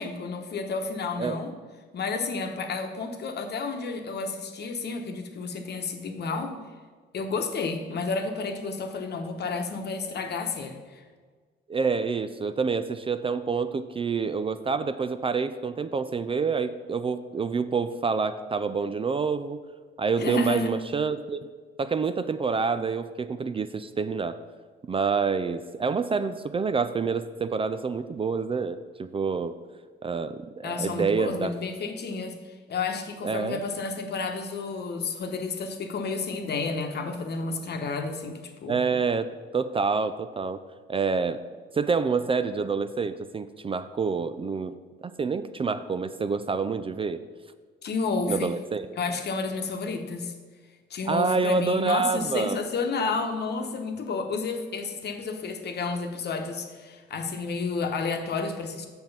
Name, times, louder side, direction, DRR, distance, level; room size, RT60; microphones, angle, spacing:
voice 1, 0.0-1.5 1.9-6.6 7.1-11.0 20.2-20.7 30.6-32.4 32.7-38.8 47.8-48.5 49.0-50.3 50.9-58.9, left 4 dB, 55° left, 5 dB, 1.1 m, -31 dB
voice 2, 11.7-19.6 20.0-21.5 21.8-24.4 24.9-29.6 30.0-31.5 33.2-33.6 38.7-40.6 40.9-41.4 41.7-44.7 45.0-47.2 48.3-48.8 51.1-52.6, right 5 dB, 25° right, 11 dB, 0.4 m, -27 dB
7.0 x 6.1 x 5.5 m, 1.5 s
cardioid pair, 90°, 20 cm